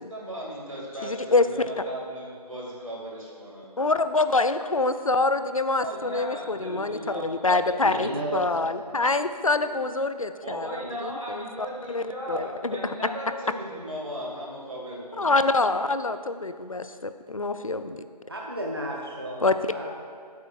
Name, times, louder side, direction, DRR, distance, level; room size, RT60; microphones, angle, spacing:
voice 1, 0.0-3.7 5.8-8.2 10.4-15.4, equal, 50° right, -4 dB, 2.4 m, -37 dB
voice 2, 1.0-1.5 3.8-10.7 11.0-11.4 11.9-12.0 12.3-12.4 15.2-18.0 19.4-19.5, left 3 dB, 55° left, 11 dB, 0.4 m, -25 dB
voice 3, 7.8-8.9 18.3-19.9, right 1 dB, 35° right, -2 dB, 0.7 m, -33 dB
13.5 x 8.2 x 2.5 m, 2.1 s
figure-of-eight pair, 165°, 21 cm